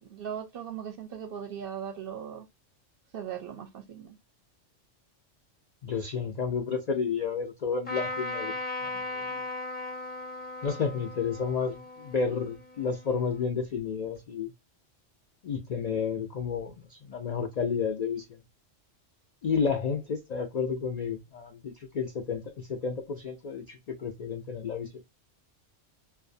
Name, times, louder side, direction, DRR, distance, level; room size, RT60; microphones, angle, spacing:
voice 1, 0.0-2.5 3.1-4.2, right 8 dB, 60° right, 0.7 m, -38 dB
voice 2, 5.8-8.6 8.8-9.4 10.6-14.5 15.4-18.4 19.4-25.0, left 6 dB, 75° left, 0.3 m, -31 dB
Trumpet, 7.9-13.4, left 2 dB, 10° left, 0.4 m, -37 dB
2.5 x 2.2 x 2.5 m
omnidirectional pair, 1.3 m